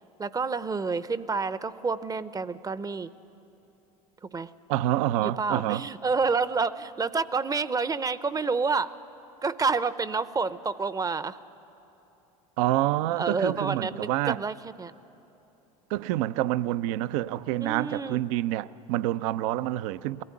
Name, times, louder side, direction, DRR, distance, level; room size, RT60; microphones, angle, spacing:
voice 1, 0.2-3.1 4.3-4.5 5.2-8.9 9.4-11.4 13.2-14.9 17.6-18.2, right 4 dB, 20° right, 0.6 m, -29 dB
voice 2, 4.7-5.9 12.6-14.4 15.9-20.2, right 14 dB, 70° right, 0.5 m, -27 dB
21.0 x 15.0 x 9.6 m
hypercardioid pair, 80°, 18 cm